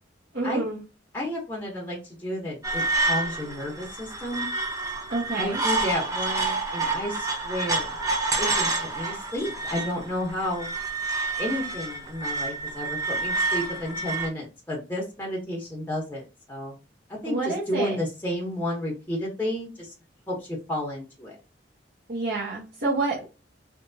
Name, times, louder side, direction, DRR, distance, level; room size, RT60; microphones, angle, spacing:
voice 1, 0.3-0.8 5.1-5.6 17.2-18.0 22.1-23.2, right 3 dB, 65° right, -9 dB, 1.6 m, -28 dB
voice 2, 1.1-4.5 5.4-8.0 8.4-10.7 11.4-16.7 17.1-19.9 20.3-21.4, left 1 dB, 10° left, -2 dB, 1.1 m, -32 dB
sound 1, 2.6-14.3, right 3 dB, 20° right, 0.7 m, -28 dB
3.3 x 2.9 x 2.7 m, 0.29 s
head